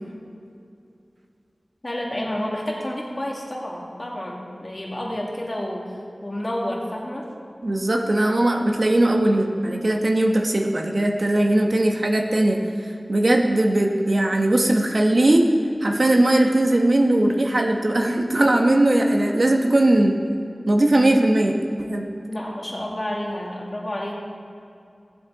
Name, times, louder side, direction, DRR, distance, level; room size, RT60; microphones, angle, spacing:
voice 1, 1.8-5.8 6.2-7.2 22.3-24.1, left 1 dB, 35° left, -2 dB, 2.3 m, -30 dB
voice 2, 7.6-15.5 15.8-20.2 20.7-22.0, right 1 dB, 55° right, 2 dB, 1.1 m, -19 dB
17.0 x 7.6 x 4.1 m, 2.6 s
wide cardioid pair, 65°, 0 cm